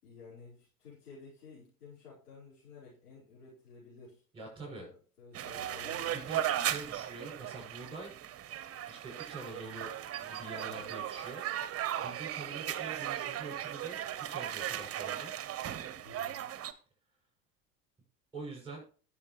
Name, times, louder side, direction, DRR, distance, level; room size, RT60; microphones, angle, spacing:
voice 1, 0.0-4.2 4.6-6.2 10.6-11.0 16.0-16.4, left 4 dB, 75° left, -7 dB, 4.6 m, -53 dB
voice 2, 4.3-4.9 6.1-8.2 8.9-9.9 10.2-15.3 18.3-18.8, right 3 dB, 10° right, -7 dB, 6.8 m, -45 dB
sound 1, 5.3-16.7, right 11 dB, 30° right, 0.9 m, -37 dB
19.5 x 7.0 x 3.1 m, 0.40 s
figure-of-eight pair, 75°, 46 cm